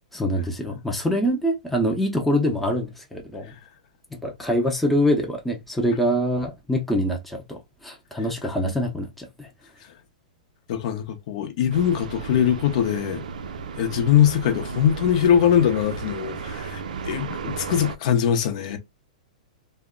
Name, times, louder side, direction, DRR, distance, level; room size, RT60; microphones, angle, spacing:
voice 1, 0.1-3.5 4.1-9.5, equal, 5° left, 0.6 m, -25 dB
voice 2, 10.7-13.2 13.8-18.8, left 9 dB, 55° left, 0.6 m, -22 dB
sound 1, 11.7-18.0, right 5 dB, 80° right, 0.4 m, -34 dB
2.1 x 2.0 x 3.6 m
hypercardioid pair, 140°, 4 cm